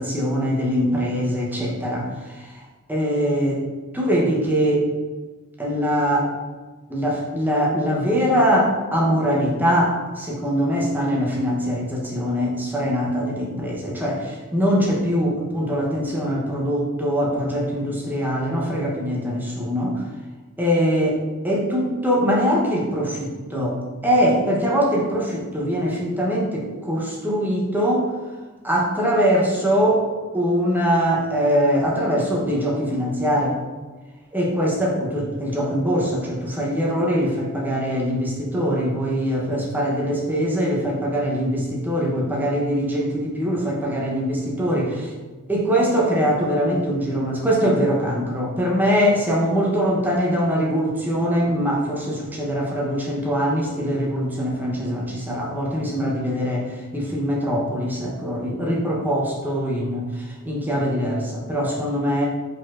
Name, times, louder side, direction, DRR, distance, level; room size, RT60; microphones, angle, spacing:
voice 1, 0.0-3.6 3.9-4.9 5.6-6.3 6.9-20.0 20.6-28.1 28.6-30.0 30.3-33.6 34.3-45.1 45.5-62.3, equal, 10° right, -4 dB, 0.7 m, -22 dB
4.8 x 3.9 x 2.4 m, 1.3 s
head